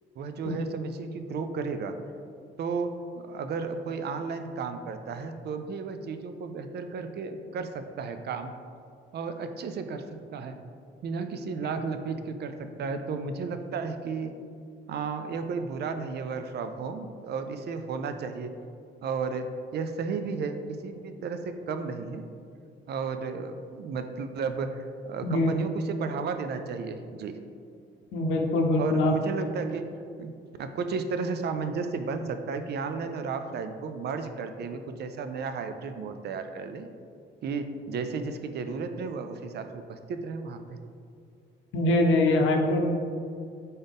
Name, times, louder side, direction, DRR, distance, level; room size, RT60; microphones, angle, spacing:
voice 1, 0.2-2.0 2.6-2.9 3.2-7.7 8.0-8.5 9.1-10.5 11.0-14.3 14.9-18.5 19.0-19.5 19.7-20.6 20.8-22.2 22.9-27.4 28.8-29.8 30.2-30.3 30.6-36.9 37.4-40.8 42.3-42.4, right 5 dB, 55° right, 8 dB, 0.4 m, -33 dB
voice 2, 25.2-25.7 28.1-29.1 41.7-42.9, left 1 dB, 80° left, 2 dB, 0.6 m, -23 dB
4.0 x 3.9 x 3.4 m, 2.4 s
cardioid pair, 90°, 20 cm